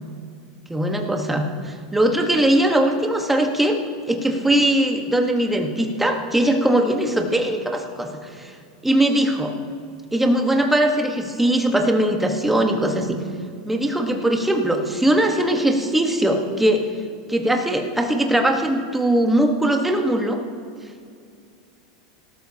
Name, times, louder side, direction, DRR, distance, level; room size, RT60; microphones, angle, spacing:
voice 1, 0.7-3.8 4.1-8.5 8.8-9.6 10.1-13.2 13.6-16.9 17.3-20.4, right 1 dB, 5° right, 3 dB, 1.3 m, -20 dB
18.0 x 13.0 x 2.9 m, 2.3 s
supercardioid pair, 130°, 4 cm